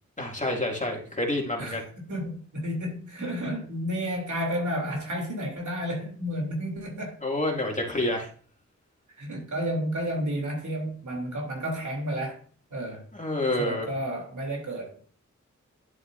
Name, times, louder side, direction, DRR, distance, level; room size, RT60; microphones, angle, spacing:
voice 1, 0.2-1.8 7.2-8.3 13.1-13.9, left 1 dB, 25° left, 2.7 m, -28 dB
voice 2, 1.6-7.2 9.2-12.4 12.7-13.0 13.6-15.0, equal, 75° right, 3.5 m, -31 dB
11.0 x 7.7 x 2.8 m
cardioid pair, 50°, 30 cm